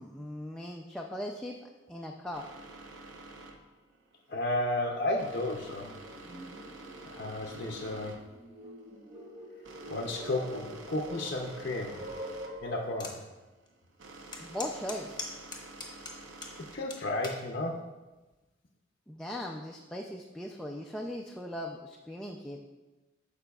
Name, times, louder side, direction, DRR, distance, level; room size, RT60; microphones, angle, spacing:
voice 1, 0.0-1.6 1.9-2.5 14.4-15.2 19.1-22.6, left 1 dB, 5° left, -1 dB, 0.4 m, -39 dB
sound 1, 2.3-17.3, right 2 dB, 70° right, 0.8 m, -50 dB
voice 2, 4.3-5.9 7.1-8.2 9.9-12.0 12.6-13.2 16.7-17.8, left 1 dB, 50° left, 0 dB, 0.6 m, -33 dB
sound 2, 4.3-4.4 4.9-13.0, right 1 dB, 35° right, 0.8 m, -45 dB
sound 3, 13.0-13.2 13.7-13.8 14.3-16.6 16.9-17.4 18.1-18.4, left 3 dB, 25° left, 1.0 m, -40 dB
13.5 x 4.9 x 2.3 m, 1.1 s
head